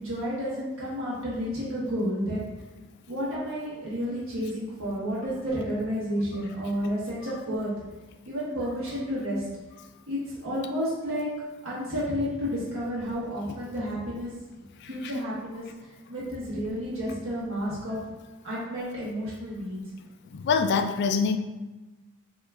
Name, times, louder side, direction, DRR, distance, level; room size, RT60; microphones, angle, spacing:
voice 1, 0.0-2.5 3.1-7.7 8.3-9.5 10.1-11.3 11.6-14.3 14.9-18.0 18.4-19.8, equal, 65° right, -8 dB, 1.4 m, -31 dB
voice 2, 14.8-15.1 20.3-21.4, left 5 dB, 50° left, 6 dB, 0.3 m, -25 dB
5.7 x 3.0 x 2.4 m, 1.2 s
head